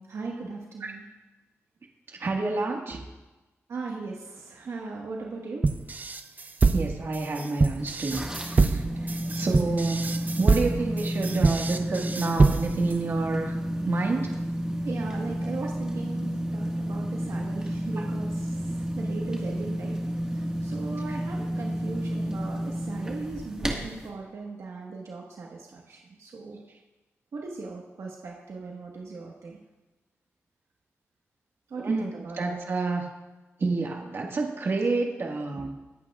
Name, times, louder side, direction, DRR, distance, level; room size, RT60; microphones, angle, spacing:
voice 1, 0.1-1.0 2.9-3.0 3.7-5.7 14.8-18.6 18.9-20.0 20.3-26.6 27.3-29.6 31.7-32.6 35.6-35.7, right 3 dB, 70° right, -2 dB, 1.4 m, -38 dB
voice 2, 2.2-3.0 6.7-8.8 9.1-10.0 10.4-13.6 13.8-14.3 18.0-18.1 21.1-21.2 31.8-32.1 32.4-33.1 33.6-35.7, right 3 dB, 50° right, 0 dB, 1.7 m, -29 dB
sound 1, 5.6-12.9, right 3 dB, 35° right, 0.6 m, -24 dB
sound 2, 7.8-24.1, equal, 15° right, 1.6 m, -31 dB
23.0 x 8.6 x 2.4 m, 1.1 s
wide cardioid pair, 105°, 5 cm